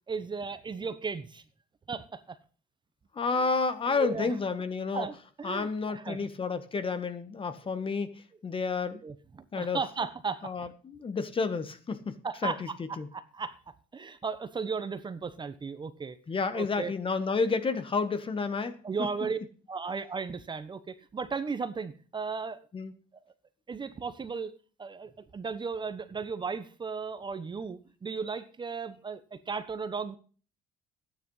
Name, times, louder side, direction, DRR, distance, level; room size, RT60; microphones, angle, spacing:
voice 1, 0.1-1.4 1.9-2.4 3.3-3.5 3.9-4.3 4.9-6.2 9.0-10.5 12.2-12.6 13.1-13.6 13.9-16.2 16.5-16.9 18.8-19.4 19.7-22.6 23.7-24.5 24.8-30.2, right 5 dB, 25° right, 11 dB, 1.1 m, -35 dB
voice 2, 3.1-5.1 5.4-9.0 9.5-9.8 10.4-12.7 13.0-13.1 16.3-18.8 22.7-22.9, left 4 dB, 30° left, 11 dB, 1.7 m, -30 dB
13.0 x 9.8 x 5.6 m, 0.40 s
cardioid pair, 110°, 17 cm